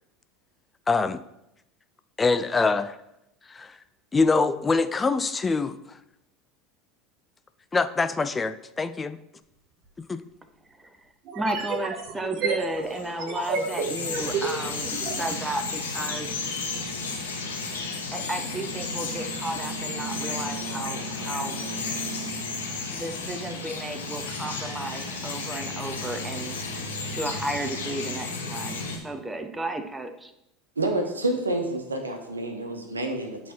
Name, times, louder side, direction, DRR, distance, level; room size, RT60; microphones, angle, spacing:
voice 1, 0.9-1.2 2.2-3.0 3.5-3.8 4.1-6.0 7.7-9.2 10.1-10.2, left 4 dB, 20° left, 12 dB, 0.4 m, -24 dB
sound 1, 9.8-9.9 11.3-15.2, right 5 dB, 50° right, 1.2 m, -31 dB
voice 2, 11.3-14.9 15.2-16.3 18.1-21.6 22.9-26.6 27.1-30.3, right 1 dB, 10° right, 8 dB, 0.7 m, -33 dB
Bird vocalization bird call bird song, 12.8-29.0, left 3 dB, 80° left, 1.1 m, -33 dB
voice 3, 30.8-33.5, right 2 dB, 85° right, 4 dB, 0.9 m, -28 dB
8.2 x 4.1 x 4.3 m, 0.85 s
figure-of-eight pair, 75°, 0 cm